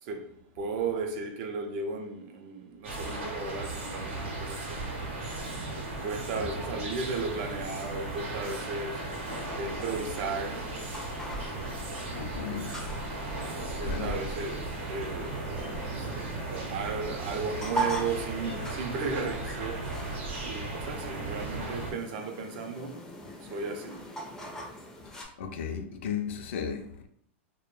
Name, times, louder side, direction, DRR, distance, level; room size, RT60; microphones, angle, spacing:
voice 1, 0.0-5.0 6.0-9.1 9.6-10.7 13.8-15.4 16.0-20.0 20.4-23.1 23.4-24.1, right 4 dB, 50° right, 0.5 m, -35 dB
sound 1, 2.8-21.9, right 2 dB, 85° right, 0.8 m, -36 dB
voice 2, 6.1-6.9 12.1-12.7 13.5-14.2 25.4-27.1, left 7 dB, 70° left, 0.4 m, -36 dB
sound 2, 7.1-25.2, right 1 dB, 10° left, 0.4 m, -41 dB
2.1 x 2.1 x 3.0 m
supercardioid pair, 145°, 7 cm